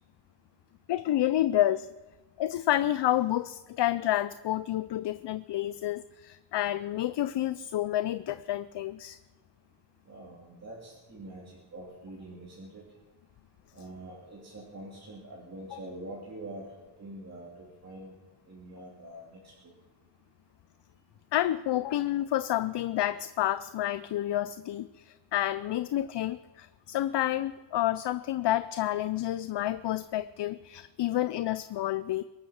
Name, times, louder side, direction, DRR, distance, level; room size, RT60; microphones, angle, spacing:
voice 1, 0.9-1.9 2.4-9.2 15.7-15.8 21.3-32.2, left 13 dB, 60° left, 13 dB, 0.6 m, -29 dB
voice 2, 10.1-12.8 13.7-18.1 18.5-19.4, right 1 dB, 30° right, -5 dB, 3.1 m, -45 dB
23.0 x 8.5 x 6.5 m, 1.1 s
wide cardioid pair, 125°, 50 cm